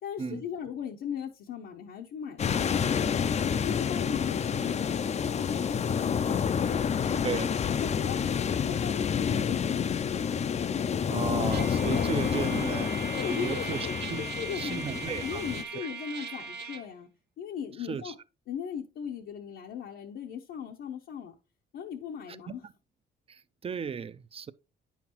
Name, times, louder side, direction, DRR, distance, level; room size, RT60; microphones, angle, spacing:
voice 1, 0.0-3.1 3.6-7.3 7.7-10.3 11.1-11.2 11.9-12.1 13.1-14.0 14.3-14.9 15.2-17.1 17.4-18.2 18.5-21.3 21.7-22.6, left 8 dB, 80° left, 0.8 m, -38 dB
sound 1, 2.4-15.6, left 7 dB, 35° left, 0.4 m, -29 dB
voice 2, 11.1-14.2 14.5-15.4 15.8-15.9 17.9-18.1 22.5-22.6 23.3-24.5, right 6 dB, 30° right, 0.5 m, -35 dB
Trumpet, 11.5-16.9, right 5 dB, 55° right, 1.1 m, -39 dB
9.0 x 5.7 x 3.0 m
cardioid pair, 90°, 20 cm